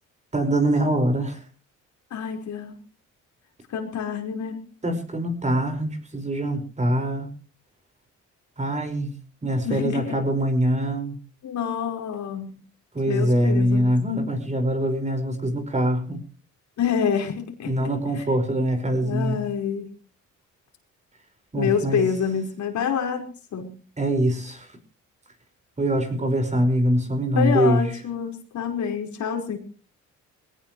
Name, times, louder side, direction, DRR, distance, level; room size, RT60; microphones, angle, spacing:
voice 1, 0.3-1.4 4.8-7.3 8.6-9.1 9.4-11.2 12.9-16.2 17.6-19.4 21.5-22.0 24.0-24.7 25.8-27.9, right 1 dB, 25° right, 5 dB, 5.3 m, -23 dB
voice 2, 2.1-2.8 3.7-4.6 9.6-10.2 11.4-12.6 13.1-13.9 16.8-17.7 18.1-18.3 19.0-19.9 21.5-23.7 27.3-29.6, left 7 dB, 70° left, 2 dB, 4.9 m, -27 dB
21.0 x 17.5 x 3.2 m, 0.38 s
cardioid pair, 90°, 30 cm